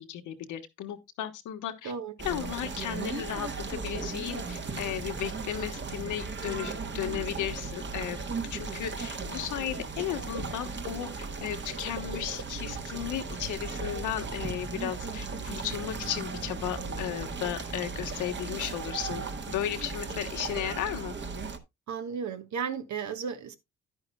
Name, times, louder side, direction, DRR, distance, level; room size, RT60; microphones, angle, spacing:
voice 1, 0.0-1.9 2.2-8.2 8.5-21.1, left 10 dB, 85° left, 1.4 m, -35 dB
sound 1, 2.2-21.6, right 4 dB, 40° right, 1.4 m, -36 dB
voice 2, 21.9-23.6, right 6 dB, 65° right, 1.4 m, -34 dB
10.5 x 9.7 x 2.3 m
cardioid pair, 90°, 30 cm